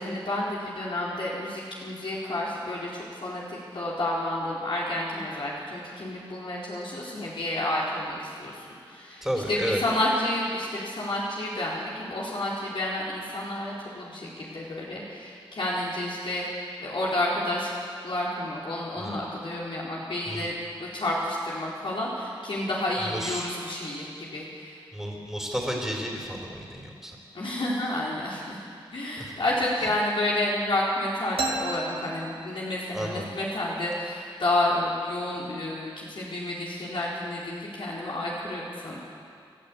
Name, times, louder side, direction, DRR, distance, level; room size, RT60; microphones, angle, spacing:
voice 1, 0.0-17.7 18.0-20.5 20.8-24.8 27.3-39.0, left 1 dB, 65° left, -6 dB, 4.4 m, -30 dB
voice 2, 9.2-9.8 19.0-19.2 20.3-20.5 23.0-23.5 24.9-27.2 32.9-33.2, equal, 5° right, -2 dB, 4.0 m, -32 dB
sound 1, 31.4-33.1, right 2 dB, 75° right, 2.3 m, -33 dB
29.5 x 13.0 x 8.7 m, 2.3 s
wide cardioid pair, 100°, 10 cm